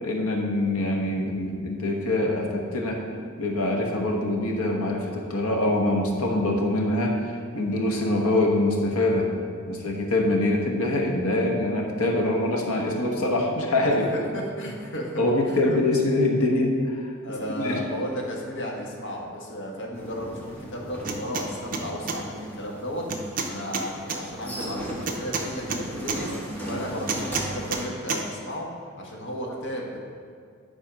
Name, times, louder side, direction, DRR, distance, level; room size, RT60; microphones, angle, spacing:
voice 1, 0.0-3.0 3.4-9.3 9.7-14.0 15.2-17.1 17.6-17.8, left 1 dB, 85° left, 1 dB, 1.2 m, -24 dB
voice 2, 14.3-15.2 15.5-15.8 17.2-26.3 26.6-28.7 29.0-30.0, equal, 60° left, -1 dB, 1.4 m, -34 dB
sound 1, 19.9-27.9, right 1 dB, 10° left, 1.3 m, -38 dB
sound 2, 21.0-21.5 21.7-22.2 23.1-24.2 25.1-26.2 27.1-27.8 28.1-28.2, right 4 dB, 40° right, 0.7 m, -29 dB
10.0 x 4.1 x 5.1 m, 2.2 s
head